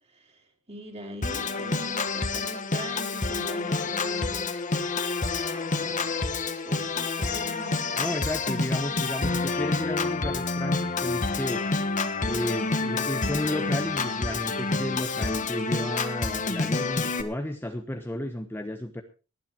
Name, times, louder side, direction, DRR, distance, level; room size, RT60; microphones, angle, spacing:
voice 1, 0.0-4.5 5.8-6.2 6.6-8.2 8.5-9.1, equal, 30° right, 2 dB, 4.3 m, -42 dB
Organ, 1.2-17.2, left 3 dB, 35° left, 1.5 m, -28 dB
voice 2, 8.0-11.6 12.2-19.0, left 1 dB, 10° left, 5 dB, 1.1 m, -33 dB
19.0 x 11.0 x 4.6 m, 0.34 s
head